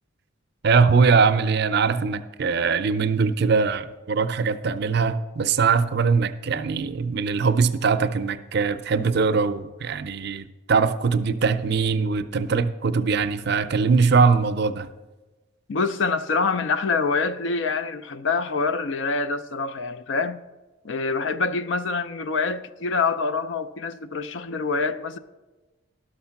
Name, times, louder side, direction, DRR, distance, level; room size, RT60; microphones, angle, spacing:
voice 1, 0.6-14.9, right 5 dB, 55° right, 0.5 m, -21 dB
voice 2, 15.7-20.4 20.8-25.2, left 4 dB, 65° left, 0.5 m, -25 dB
11.5 x 6.5 x 5.8 m
head